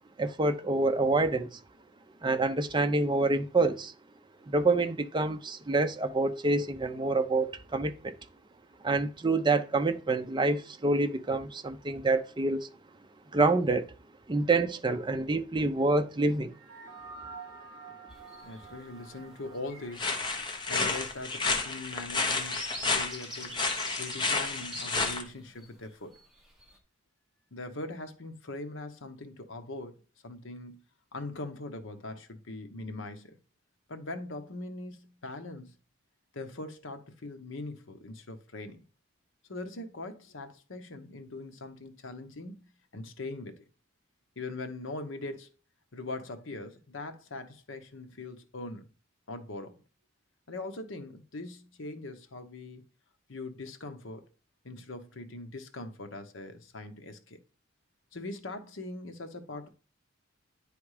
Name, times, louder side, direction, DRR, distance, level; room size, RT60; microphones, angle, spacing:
voice 1, 0.2-1.6 2.2-3.9 4.5-8.1 8.8-12.7 13.3-13.9 14.3-16.6, right 2 dB, 20° right, 0.5 m, -27 dB
sound 1, 16.5-21.2, right 4 dB, 45° right, 1.5 m, -49 dB
sound 2, 18.1-18.7 19.2-19.4 19.6-25.7 26.1-26.8, left 1 dB, ahead, 1.4 m, -45 dB
voice 2, 18.4-20.1 20.7-23.6 24.0-26.2 27.5-29.9 30.2-30.8 31.1-33.4 33.9-35.7 36.3-38.8 39.5-42.6 42.9-43.6 44.4-45.5 45.9-48.9 49.3-49.8 50.5-52.8 53.3-54.2 54.6-57.4 58.1-59.7, left 2 dB, 70° left, 1.0 m, -41 dB
sound 3, 20.0-25.2, left 3 dB, 25° left, 0.9 m, -31 dB
9.8 x 3.5 x 4.8 m
head